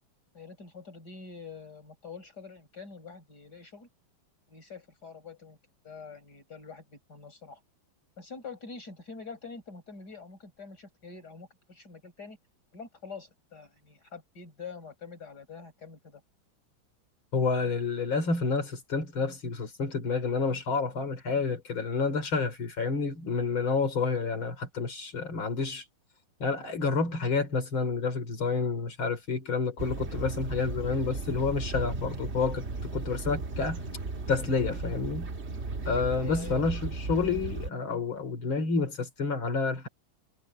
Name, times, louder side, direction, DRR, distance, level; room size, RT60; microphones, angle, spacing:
voice 1, 0.3-3.9 4.5-5.6 5.8-7.6 8.2-12.4 12.7-16.2 36.2-36.7, left 5 dB, 55° left, 6.8 m, -45 dB
voice 2, 17.3-25.9 26.4-33.8 34.3-35.3 35.9-39.9, left 4 dB, 90° left, 4.2 m, -29 dB
sound 1, 29.8-37.7, right 3 dB, 35° right, 1.8 m, -36 dB
omnidirectional pair, 2.1 m